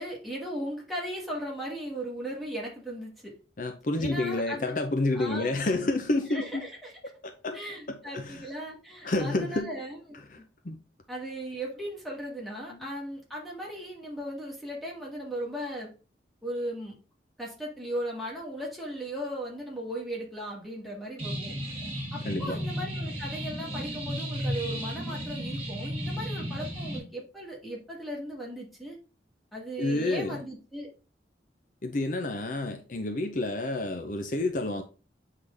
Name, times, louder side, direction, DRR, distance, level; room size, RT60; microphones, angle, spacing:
voice 1, 0.0-3.3 4.0-4.7 5.1-5.6 6.3-6.9 7.5-10.0 10.4-10.5 11.1-15.9 16.4-16.9 17.4-21.5 22.1-29.0 29.5-30.9, equal, ahead, 2.0 m, -37 dB
voice 2, 3.6-6.7 7.2-7.6 7.9-8.5 9.0-9.7 10.3-10.4 10.6-10.8 12.7-12.9 22.2-22.6 29.8-30.4 31.8-34.8, left 2 dB, 50° left, 0.6 m, -29 dB
sound 1, 21.2-27.0, equal, 30° right, 2.2 m, -34 dB
7.8 x 3.8 x 3.3 m
head